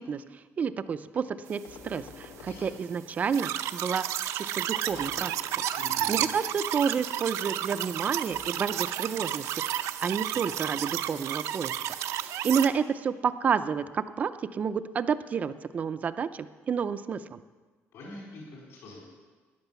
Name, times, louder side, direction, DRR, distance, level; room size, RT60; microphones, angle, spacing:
voice 1, 0.0-4.0 4.3-5.6 6.1-11.8 12.2-17.4, right 6 dB, 30° right, 13 dB, 0.5 m, -30 dB
sound 1, 1.6-3.6 4.9-6.1 8.3-9.3, left 5 dB, 75° left, 1.4 m, -50 dB
sound 2, 3.3-12.7, right 12 dB, 75° right, 0.6 m, -32 dB
voice 2, 5.8-6.2 17.9-19.1, left 2 dB, 60° left, -3 dB, 4.4 m, -44 dB
13.5 x 10.0 x 7.0 m, 1.4 s
cardioid pair, 170°, 5 cm